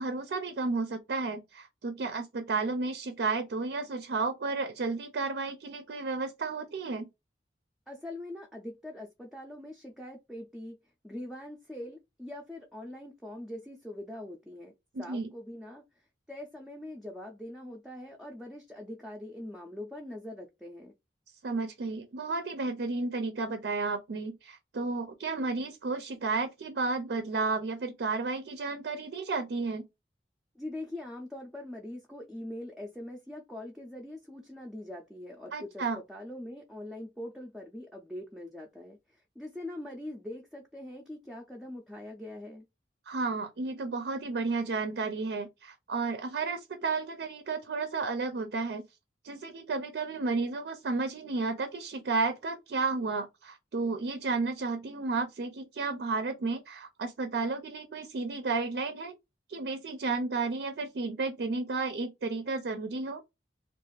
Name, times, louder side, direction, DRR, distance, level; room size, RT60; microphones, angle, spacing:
voice 1, 0.0-7.1 14.9-15.3 21.4-29.9 35.5-36.0 43.1-48.8 49.2-59.2 59.5-63.2, right 3 dB, 70° right, 0.4 m, -32 dB
voice 2, 7.9-10.8 11.0-14.7 15.0-20.9 30.6-42.7, left 1 dB, ahead, 0.4 m, -43 dB
2.4 x 2.4 x 3.1 m
head